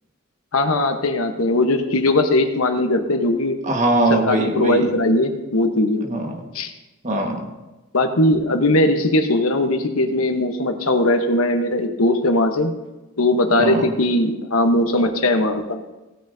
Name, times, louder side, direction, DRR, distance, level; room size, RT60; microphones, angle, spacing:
voice 1, 0.5-3.6 4.1-6.1 6.5-6.7 7.9-12.7 13.2-15.8, left 1 dB, 80° left, 6 dB, 1.1 m, -19 dB
voice 2, 3.6-4.9 6.0-6.4 7.0-7.5 13.6-13.9, right 2 dB, 35° right, 2 dB, 1.6 m, -21 dB
16.5 x 10.0 x 2.8 m, 1.1 s
head